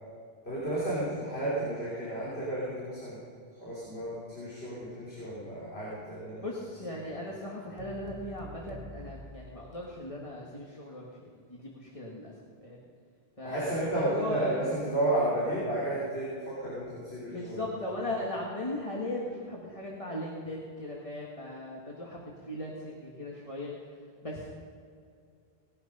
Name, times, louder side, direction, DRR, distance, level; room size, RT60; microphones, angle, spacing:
voice 1, 0.4-3.2 3.6-6.5 13.4-18.0, right 1 dB, 80° left, -8 dB, 3.7 m, -32 dB
voice 2, 6.4-11.1 11.5-12.3 12.6-12.8 13.4-14.6 17.3-23.7 24.2-24.5, left 1 dB, 35° left, -3 dB, 1.6 m, -37 dB
sound 1, 7.8-10.3, left 1 dB, 60° right, 1.7 m, -47 dB
18.0 x 10.5 x 5.4 m, 2.3 s
omnidirectional pair, 1.1 m